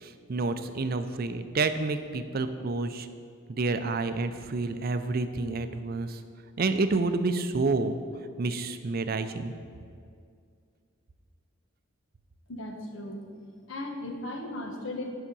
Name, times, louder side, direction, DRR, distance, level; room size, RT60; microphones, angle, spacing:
voice 1, 0.0-3.1 3.5-6.2 6.6-8.0 8.4-9.5, right 3 dB, 45° right, 10 dB, 0.5 m, -29 dB
voice 2, 12.5-13.2 13.7-15.1, left 1 dB, 70° left, 3 dB, 1.2 m, -36 dB
9.9 x 5.8 x 5.3 m, 2.3 s
head